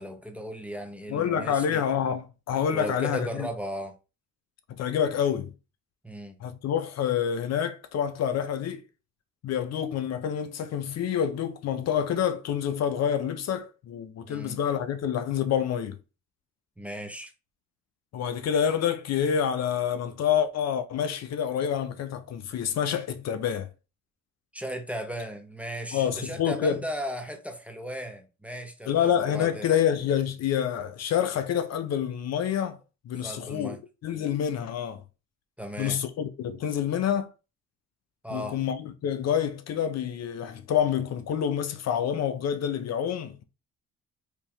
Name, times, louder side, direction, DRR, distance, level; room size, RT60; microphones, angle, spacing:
voice 1, 0.0-1.8 2.7-3.9 6.0-6.4 14.2-14.6 16.8-17.3 24.5-29.7 33.2-33.8 35.6-36.0 38.2-38.6, equal, 5° right, 0.6 m, -36 dB
voice 2, 1.1-3.5 4.7-5.5 6.4-8.8 9.4-16.0 18.1-23.7 25.9-26.8 28.9-32.8 33.0-33.8 34.0-35.0 35.8-37.3 38.3-43.4, left 8 dB, 60° left, 0.5 m, -27 dB
3.5 x 2.7 x 3.0 m
cardioid pair, 90°, 30 cm